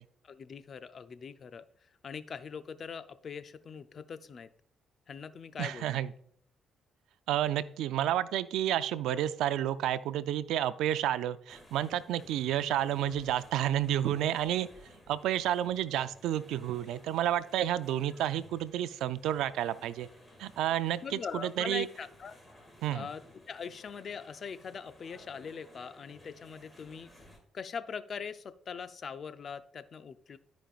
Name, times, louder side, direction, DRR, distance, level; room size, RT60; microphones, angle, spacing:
voice 1, 0.2-4.5 5.1-6.0 12.2-12.3 21.0-22.4 22.9-23.2 23.5-27.1 27.5-30.4, left 6 dB, 50° left, 12 dB, 0.5 m, -42 dB
voice 2, 5.6-6.1 7.3-14.7 15.1-20.1 20.4-21.9 22.8-23.1, right 11 dB, 85° right, 14 dB, 0.4 m, -30 dB
sound 1, 11.5-27.4, left 1 dB, 15° left, 2.2 m, -57 dB
13.5 x 5.2 x 2.4 m, 0.64 s
cardioid pair, 90°, 0 cm